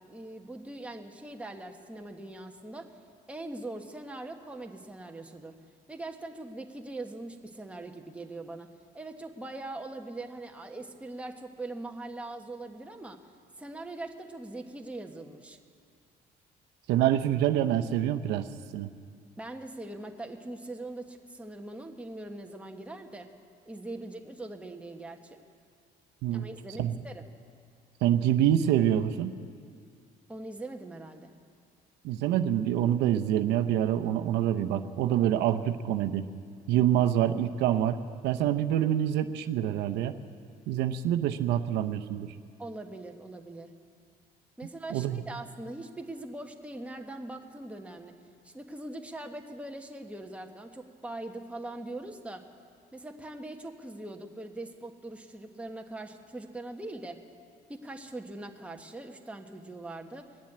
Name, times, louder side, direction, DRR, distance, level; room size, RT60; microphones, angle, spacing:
voice 1, 0.1-2.9 3.3-5.5 5.9-8.7 8.9-13.2 13.6-15.6 19.4-23.3 23.7-25.4 26.3-27.3 30.3-31.3 36.7-36.8 42.6-43.7 44.6-48.1 48.4-52.5 52.9-57.2 57.7-60.3, right 2 dB, 5° right, 2 dB, 1.2 m, -41 dB
voice 2, 16.9-18.5 18.7-18.9 26.2-26.4 26.8-26.9 28.0-29.3 32.0-36.3 36.7-38.0 38.2-40.1 40.7-42.3 44.9-45.2, right 11 dB, 90° right, 8 dB, 0.7 m, -26 dB
20.0 x 7.4 x 9.7 m, 2.2 s
cardioid pair, 110°, 17 cm